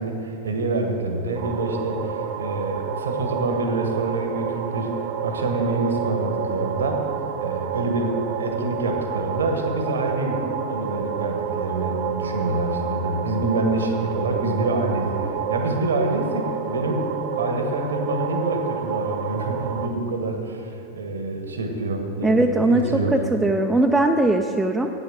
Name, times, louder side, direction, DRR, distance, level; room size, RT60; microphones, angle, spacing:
voice 1, 0.0-7.0 7.4-17.1 17.4-23.2, right 2 dB, 70° right, 4 dB, 1.2 m, -26 dB
sound 1, 1.3-19.9, right 7 dB, 45° right, 0.7 m, -30 dB
voice 2, 22.2-22.8 23.1-24.9, right 2 dB, 10° right, 2 dB, 0.4 m, -20 dB
8.6 x 8.1 x 7.7 m, 2.8 s
figure-of-eight pair, 90°, 0 cm